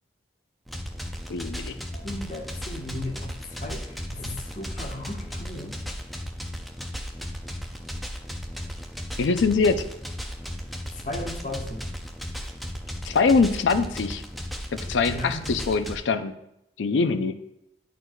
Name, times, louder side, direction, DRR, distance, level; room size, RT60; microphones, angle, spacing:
sound 1, 0.7-16.0, equal, ahead, 0.4 m, -35 dB
voice 1, 1.3-1.8 9.2-9.8 13.1-14.2 14.7-16.4 16.8-17.4, left 4 dB, 90° left, 10 dB, 0.4 m, -23 dB
voice 2, 1.9-5.8 10.9-11.9 14.9-15.5, left 1 dB, 45° left, 0 dB, 1.0 m, -36 dB
11.0 x 4.6 x 2.3 m, 0.81 s
head